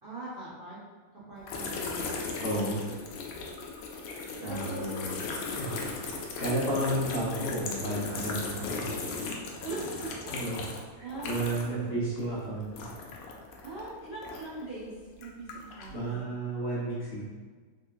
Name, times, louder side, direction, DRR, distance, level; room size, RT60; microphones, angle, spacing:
voice 1, 0.0-0.8 1.3-2.2 4.3-5.1 9.6-10.3 11.0-11.4 13.6-14.9 15.2-16.3, right 2 dB, 70° right, -11 dB, 0.5 m, -41 dB
sound 1, 1.5-11.8 12.1-14.6 15.1-16.0, left 4 dB, 85° left, 1.5 m, -37 dB
voice 2, 2.4-2.9 4.4-8.8 10.3-10.7 11.0-12.9 15.9-17.2, right 1 dB, 50° left, -9 dB, 1.3 m, -32 dB
3.9 x 3.0 x 2.5 m, 1.5 s
omnidirectional pair, 2.4 m